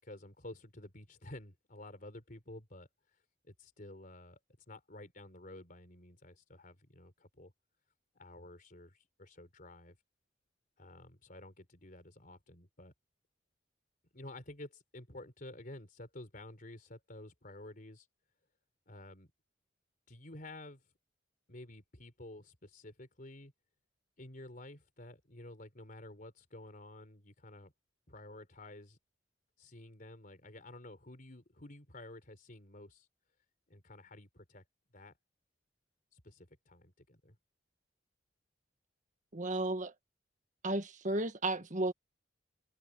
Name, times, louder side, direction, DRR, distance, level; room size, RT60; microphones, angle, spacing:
voice 1, 0.0-2.9 3.4-4.4 4.7-7.5 8.1-10.0 10.8-12.9 14.1-18.1 18.9-19.3 20.1-20.8 21.5-23.5 24.2-27.7 28.1-29.0 29.6-33.1 33.7-34.6 34.9-35.2 36.1-37.4, left 1 dB, 50° left, 3.9 m, -51 dB
voice 2, 39.3-39.9 40.6-41.9, right 2 dB, 45° right, 1.6 m, -33 dB
head